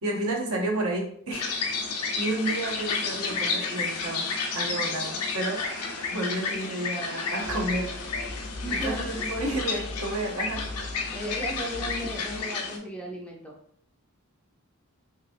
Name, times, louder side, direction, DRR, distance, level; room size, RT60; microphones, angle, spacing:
voice 1, 0.0-1.4 2.2-4.3 4.5-5.6 6.1-7.9 8.7-10.6, right 1 dB, 70° right, 0 dB, 0.8 m, -31 dB
sound 1, 1.3-12.8, left 4 dB, 85° left, 0.6 m, -31 dB
Breathing, 2.7-8.2, equal, 50° right, 1.0 m, -46 dB
sound 2, 7.4-12.4, left 2 dB, 45° left, 0.6 m, -39 dB
voice 2, 8.6-9.2 11.1-13.5, equal, 5° left, -1 dB, 0.4 m, -35 dB
3.2 x 2.9 x 2.5 m, 0.62 s
head